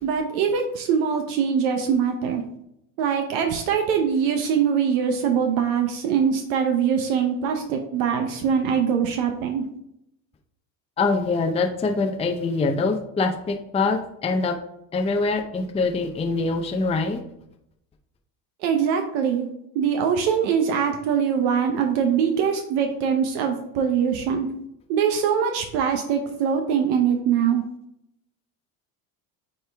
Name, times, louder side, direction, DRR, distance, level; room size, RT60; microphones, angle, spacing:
voice 1, 0.0-2.4 3.0-9.6 18.6-19.5 19.7-24.5 24.9-27.6, right 7 dB, 70° right, 4 dB, 1.0 m, -23 dB
voice 2, 11.0-14.5 14.9-17.2, left 3 dB, 15° left, 4 dB, 0.6 m, -24 dB
9.0 x 3.2 x 3.4 m, 0.78 s
supercardioid pair, 95°, 49 cm